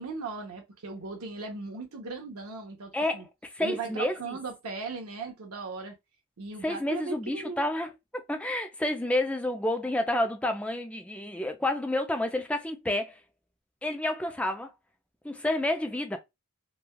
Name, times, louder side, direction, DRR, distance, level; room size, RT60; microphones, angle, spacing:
voice 1, 0.0-3.3 3.6-6.0 6.4-7.6, right 3 dB, 85° right, 0.7 m, -38 dB
voice 2, 2.9-4.4 6.6-7.9 8.3-13.2 13.8-14.7 15.2-16.2, left 1 dB, 5° left, 0.3 m, -29 dB
3.1 x 2.2 x 2.2 m
head